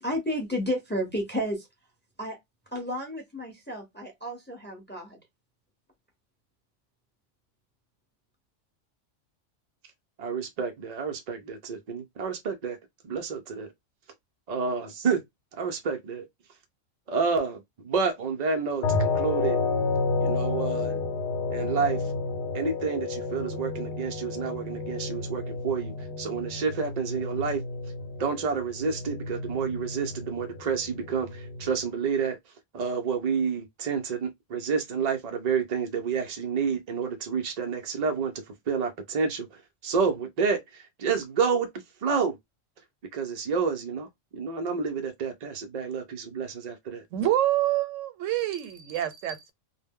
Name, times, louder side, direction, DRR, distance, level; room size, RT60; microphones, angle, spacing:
voice 1, 0.0-1.7 2.2-2.4 2.7-5.2, equal, 10° left, 0.6 m, -32 dB
voice 2, 10.2-12.8 13.0-13.7 14.5-15.2 15.5-16.3 17.1-19.6 20.2-21.0 21.5-22.1 22.5-27.6 28.2-32.4 32.7-38.3 38.7-41.7 42.0-42.4 43.1-47.0, right 5 dB, 60° right, 0.4 m, -29 dB
sound 1, 18.8-31.8, left 4 dB, 55° left, 0.8 m, -31 dB
voice 3, 47.1-49.5, right 13 dB, 85° right, 0.9 m, -26 dB
2.1 x 2.0 x 3.5 m
omnidirectional pair, 1.3 m